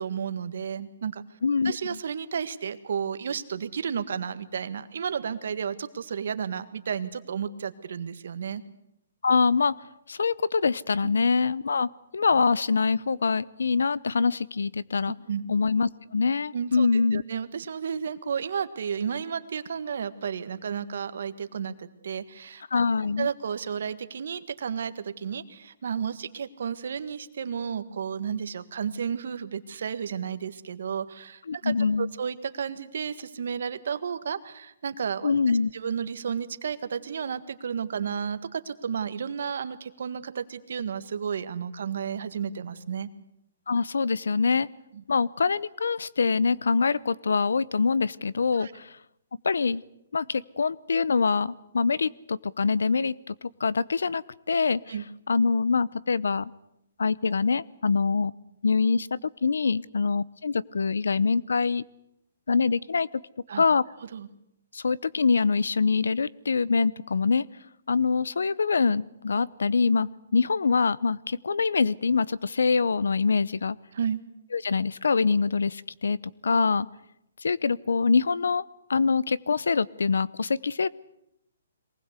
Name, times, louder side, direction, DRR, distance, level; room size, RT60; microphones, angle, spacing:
voice 1, 0.0-1.2 1.6-8.6 15.3-15.5 16.5-22.6 23.2-31.7 32.0-35.3 35.7-43.1 44.9-45.0 48.5-48.7 54.9-55.0 63.5-63.6 64.1-64.3 73.9-74.2, right 7 dB, 65° right, 11 dB, 1.7 m, -32 dB
voice 2, 1.4-2.0 9.2-9.8 10.1-15.1 15.5-17.2 22.7-23.3 31.5-32.1 35.2-35.7 43.7-44.7 45.1-49.0 49.4-49.8 50.1-54.8 55.3-56.5 57.0-58.3 58.6-61.8 62.5-63.2 63.6-63.8 64.7-67.5 67.9-73.8 74.5-76.9 77.4-78.6 78.9-80.9, left 4 dB, 90° left, 21 dB, 0.8 m, -24 dB
23.0 x 19.5 x 8.2 m, 0.80 s
hypercardioid pair, 155°, 0 cm